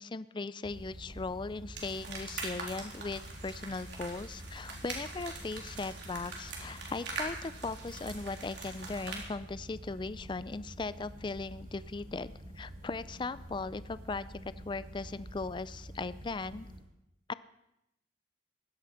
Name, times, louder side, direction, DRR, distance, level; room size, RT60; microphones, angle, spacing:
voice 1, 0.0-14.3 14.7-16.7 17.3-17.4, left 3 dB, 25° left, 16 dB, 0.4 m, -38 dB
sound 1, 0.6-16.8, equal, 50° right, 4.9 m, -48 dB
sound 2, 1.7-9.2, right 3 dB, 75° right, 3.7 m, -43 dB
16.5 x 12.0 x 5.7 m, 0.87 s
head